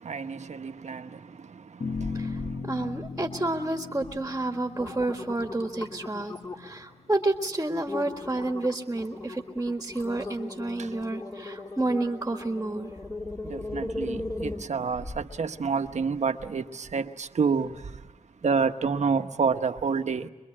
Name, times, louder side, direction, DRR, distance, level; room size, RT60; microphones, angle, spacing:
voice 1, 0.0-2.7 10.8-10.9 13.4-18.1 18.4-20.3, right 5 dB, 75° right, 1.1 m, -29 dB
sound 1, 1.8-8.3, left 4 dB, 60° left, 1.1 m, -39 dB
sound 2, 1.9-2.6 2.9-3.5 4.0-4.2 4.5-6.8 7.3-7.4 7.9-15.4 15.9-16.0, left 2 dB, 30° left, 2.7 m, -38 dB
voice 2, 2.1-12.9, right 2 dB, 20° right, 1.7 m, -30 dB
25.0 x 23.0 x 8.7 m
wide cardioid pair, 110°, 12 cm